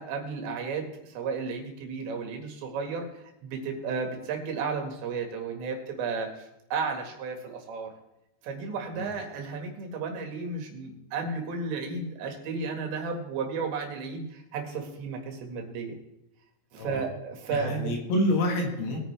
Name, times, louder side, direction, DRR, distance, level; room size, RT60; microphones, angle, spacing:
voice 1, 0.0-3.1 3.4-7.9 8.4-16.0 16.7-17.9, right 4 dB, 75° right, 3 dB, 4.0 m, -33 dB
voice 2, 17.5-19.0, left 1 dB, 75° left, 1 dB, 3.8 m, -27 dB
21.0 x 9.4 x 3.4 m, 0.87 s
omnidirectional pair, 5.2 m